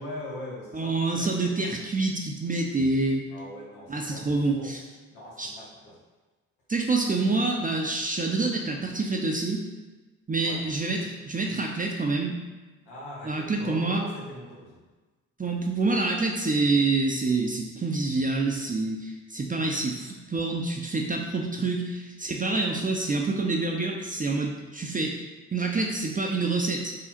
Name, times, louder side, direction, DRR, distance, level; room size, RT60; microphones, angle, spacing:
voice 1, 0.0-1.5 3.3-4.7 5.1-6.0 10.4-10.6 12.8-14.8, left 1 dB, 85° left, -5 dB, 1.0 m, -41 dB
voice 2, 0.7-3.2 3.9-4.8 5.4-5.5 6.7-9.6 10.3-12.3 13.2-14.0 15.4-25.2 25.5-26.9, right 3 dB, 20° right, 0 dB, 0.5 m, -27 dB
3.7 x 2.0 x 4.2 m, 1.3 s
hypercardioid pair, 45°, 40 cm